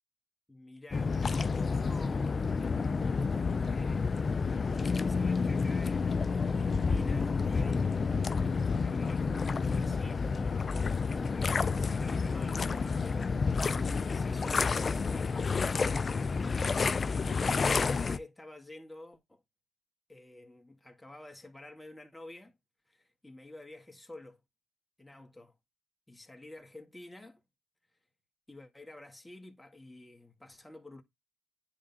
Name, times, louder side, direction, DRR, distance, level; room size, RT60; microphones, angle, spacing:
voice 1, 0.5-2.6 3.0-8.3 8.8-10.3 10.7-13.4 14.1-16.0 16.9-19.4 20.1-22.6 22.9-24.4 25.0-25.6 26.1-27.4 28.5-31.0, left 1 dB, 10° left, 1.8 m, -50 dB
sound 1, 0.9-18.2, left 4 dB, 35° left, 0.4 m, -29 dB
10.0 x 3.6 x 2.8 m
cardioid pair, 90°, 0 cm